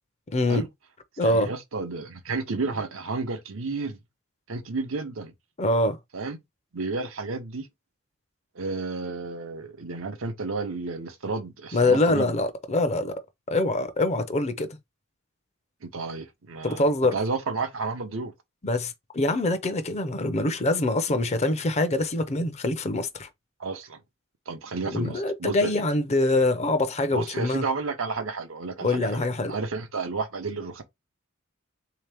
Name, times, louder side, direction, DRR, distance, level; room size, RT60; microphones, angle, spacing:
voice 1, 0.3-0.7 1.2-1.5 5.6-6.0 11.7-13.1 13.5-14.8 16.6-17.2 18.6-23.3 24.9-27.6 28.8-29.5, left 2 dB, 35° left, 0.6 m, -24 dB
voice 2, 1.2-4.0 4.5-5.3 6.1-6.4 6.7-7.7 8.5-12.3 15.8-18.3 23.6-24.0 24.5-25.7 27.1-30.8, right 4 dB, 75° right, 0.8 m, -32 dB
3.7 x 2.9 x 3.4 m
head